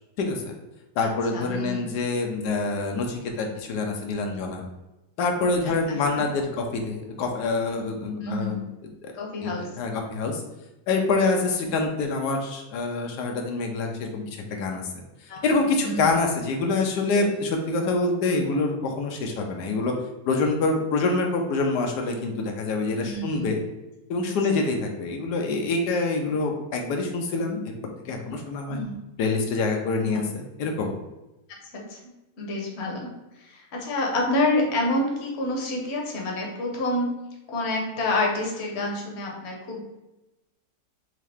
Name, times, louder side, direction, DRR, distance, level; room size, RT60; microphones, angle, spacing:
voice 1, 0.2-0.5 1.0-4.6 5.2-8.6 9.0-9.1 9.4-9.5 9.8-10.4 10.9-14.8 15.4-19.9 20.3-23.6 24.1-27.7 28.0-28.8 29.2-30.9, left 3 dB, 85° left, 2 dB, 1.2 m, -26 dB
voice 2, 1.0-1.8 5.6-5.7 8.2-8.6 9.1-9.7 11.6-11.8 15.3-15.4 15.8-16.1 23.0-23.5 28.7-28.9 30.1-30.2 31.7-32.0 32.4-33.1 33.4-37.1 37.5-39.8, left 2 dB, 50° left, -1 dB, 1.0 m, -28 dB
3.6 x 3.2 x 3.4 m, 1.0 s
omnidirectional pair, 1.7 m